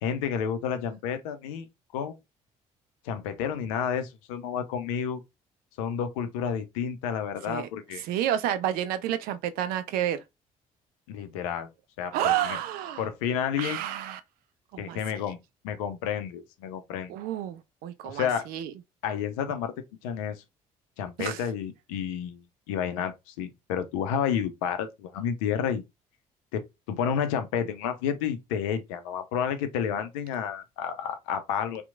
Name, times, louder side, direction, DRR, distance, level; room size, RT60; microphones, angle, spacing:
voice 1, 0.0-1.7 1.9-2.2 3.0-5.2 5.8-8.0 11.1-11.7 12.0-12.6 13.0-13.8 14.8-15.4 15.6-17.1 18.1-18.5 19.0-19.7 20.0-20.4 21.0-25.8 26.5-31.8, left 8 dB, 65° left, 0.5 m, -30 dB
voice 2, 8.0-10.2 12.1-13.1 13.6-14.2 14.7-15.2 17.1-18.7 21.2-21.4, right 11 dB, 55° right, 0.4 m, -30 dB
2.8 x 2.1 x 2.4 m
figure-of-eight pair, 45°, 18 cm